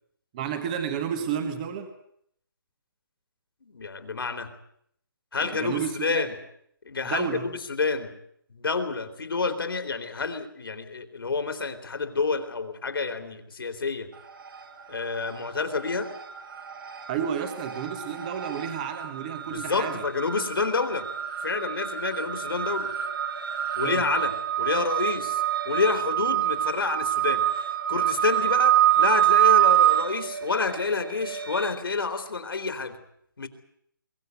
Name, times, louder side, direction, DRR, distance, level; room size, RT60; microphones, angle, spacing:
voice 1, 0.3-1.9 5.4-6.3 7.0-7.5 17.1-20.0 23.8-24.1, right 8 dB, 20° right, 8 dB, 1.4 m, -31 dB
voice 2, 3.6-4.5 5.3-6.3 6.9-8.1 8.5-14.1 14.9-16.1 19.5-21.1 21.4-22.9 23.8-33.0 33.4-33.5, left 4 dB, 75° left, 8 dB, 3.4 m, -29 dB
sound 1, 14.2-14.8 15.1-31.7, right 12 dB, 60° right, 3.3 m, -26 dB
23.0 x 16.0 x 9.5 m, 0.71 s
hypercardioid pair, 170°, 12 cm